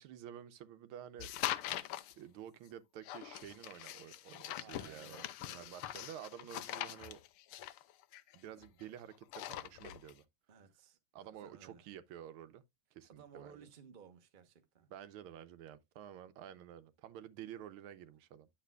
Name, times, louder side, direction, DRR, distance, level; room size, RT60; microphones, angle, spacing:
voice 1, 0.0-1.5 2.2-7.2 8.3-10.3 11.1-12.6 12.9-13.5 14.9-18.5, right 10 dB, 80° right, 1.5 m, -51 dB
sound 1, 1.2-2.1 3.0-8.8 9.2-10.1, left 13 dB, 85° left, 1.5 m, -42 dB
voice 2, 4.6-5.9 10.5-11.9 13.1-14.9, right 6 dB, 40° right, 0.7 m, -58 dB
10.0 x 6.7 x 2.3 m
omnidirectional pair, 2.4 m